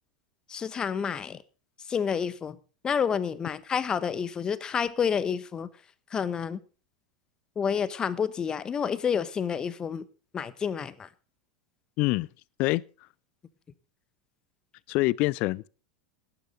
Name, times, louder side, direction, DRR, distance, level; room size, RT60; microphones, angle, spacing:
voice 1, 0.5-1.4 1.9-2.6 2.8-5.7 6.1-6.6 7.6-10.0 10.3-11.1, left 7 dB, 25° left, 1.2 m, -29 dB
voice 2, 12.0-12.3 12.6-12.8 14.9-15.7, left 21 dB, 50° left, 0.6 m, -25 dB
18.0 x 10.5 x 3.9 m
figure-of-eight pair, 85°, 3 cm